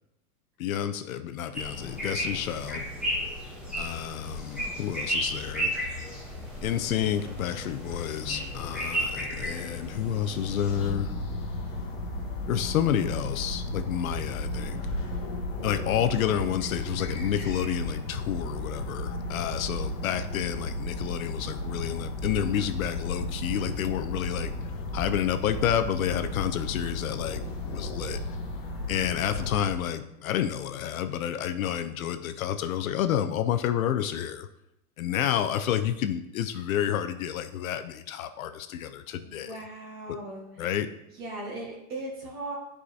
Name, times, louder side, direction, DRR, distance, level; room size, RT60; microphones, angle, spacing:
voice 1, 0.6-2.8 3.8-5.8 6.6-11.1 12.5-14.8 15.6-24.5 24.9-28.2 28.9-34.5 35.0-39.6 40.1-40.2 40.6-40.9, left 10 dB, 65° left, 9 dB, 0.6 m, -30 dB
sound 1, 1.5-10.9, equal, ahead, 0.7 m, -34 dB
sound 2, 10.8-29.8, left 1 dB, 30° left, 1.4 m, -34 dB
voice 2, 39.2-40.4 41.1-42.6, right 2 dB, 20° right, -1 dB, 1.4 m, -38 dB
11.0 x 4.9 x 2.7 m, 0.88 s
supercardioid pair, 165°, 45 cm